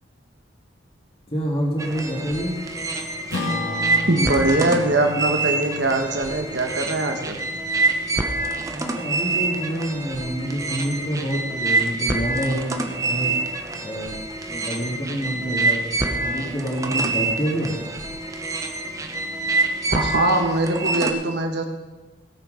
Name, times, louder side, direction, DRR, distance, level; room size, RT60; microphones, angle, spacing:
voice 1, 1.3-2.5 8.6-13.4 13.8-14.2 14.5-17.7, equal, 30° left, -1 dB, 1.9 m, -27 dB
sound 1, 1.8-21.1, right 3 dB, 15° right, 0.7 m, -26 dB
Acoustic guitar / Strum, 3.3-8.0, left 2 dB, 85° left, 2.3 m, -33 dB
voice 2, 4.1-7.4 19.9-21.6, right 2 dB, 55° right, 3 dB, 1.4 m, -22 dB
16.5 x 7.3 x 5.2 m, 1.2 s
head